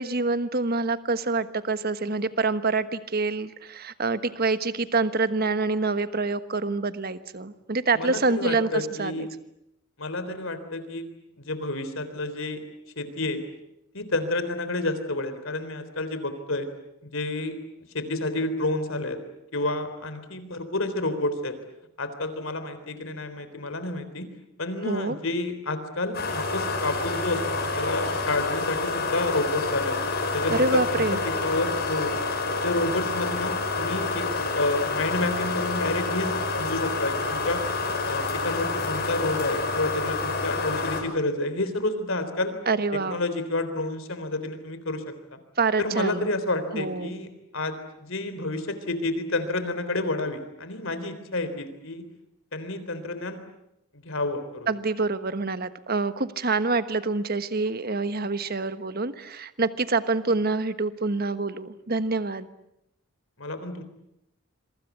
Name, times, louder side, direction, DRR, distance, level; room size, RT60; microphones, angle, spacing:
voice 1, 0.0-9.3 24.8-25.2 30.5-31.2 42.7-43.2 45.6-46.3 46.7-47.1 54.7-62.5, right 3 dB, 45° right, 12 dB, 1.3 m, -26 dB
voice 2, 7.9-9.3 10.0-11.1 11.4-12.6 13.0-13.4 13.9-16.7 17.0-17.6 17.9-19.2 19.5-21.6 22.0-24.3 24.6-30.0 30.3-32.1 32.6-34.3 34.5-37.6 38.0-42.6 42.9-45.4 45.8-52.1 52.5-53.4 53.9-54.7 63.4-63.8, left 2 dB, 65° left, 10 dB, 3.7 m, -29 dB
sound 1, 26.1-41.0, left 3 dB, 50° left, 6.0 m, -28 dB
27.0 x 23.5 x 8.3 m, 0.82 s
head